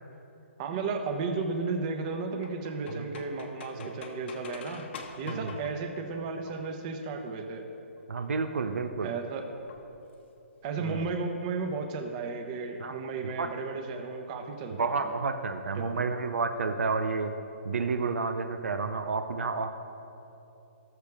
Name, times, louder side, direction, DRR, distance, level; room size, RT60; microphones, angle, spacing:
voice 1, 0.6-4.9 5.2-7.7 9.0-9.4 10.6-15.2 15.7-16.1, right 4 dB, 35° right, 5 dB, 1.1 m, -34 dB
sound 1, 1.7-7.0 8.0-8.4 9.7-10.3 10.7-10.8 10.9-11.0 11.3-11.7, left 5 dB, 55° left, 1.2 m, -47 dB
voice 2, 8.1-9.1 10.8-11.0 12.8-13.5 14.8-17.3 17.6-19.8, right 4 dB, 80° right, 7 dB, 0.7 m, -31 dB
18.5 x 6.7 x 3.6 m, 2.9 s
hypercardioid pair, 145°, 7 cm